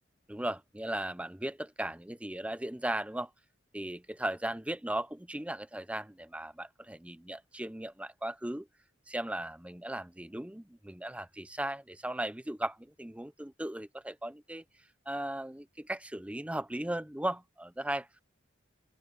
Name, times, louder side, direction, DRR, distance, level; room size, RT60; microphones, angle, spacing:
voice 1, 0.3-3.3 3.7-8.7 9.1-14.6 15.1-18.1, right 1 dB, 5° right, 0.6 m, -37 dB
open air
head